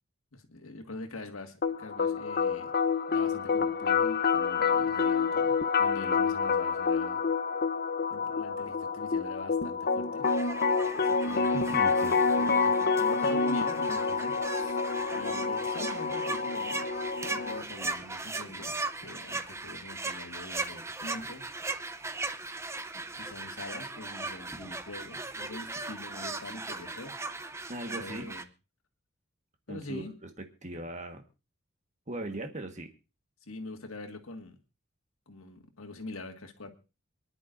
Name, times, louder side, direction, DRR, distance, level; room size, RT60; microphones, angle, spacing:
voice 1, 0.3-2.7 3.1-7.2 8.1-10.3 11.0-11.9 12.4-14.8 15.1-16.8 17.3-21.4 23.2-27.2 27.9-28.5 29.7-30.1 33.4-34.6 35.3-36.7, left 2 dB, 75° left, 3 dB, 1.9 m, -44 dB
sound 1, 1.6-17.6, left 5 dB, 45° left, 0.8 m, -28 dB
sound 2, 10.2-28.4, right 3 dB, 15° right, 0.6 m, -38 dB
voice 2, 11.5-12.2 27.7-28.3 29.7-31.2 32.1-32.9, right 1 dB, 35° right, 5 dB, 1.5 m, -39 dB
27.5 x 11.0 x 2.6 m, 0.31 s
head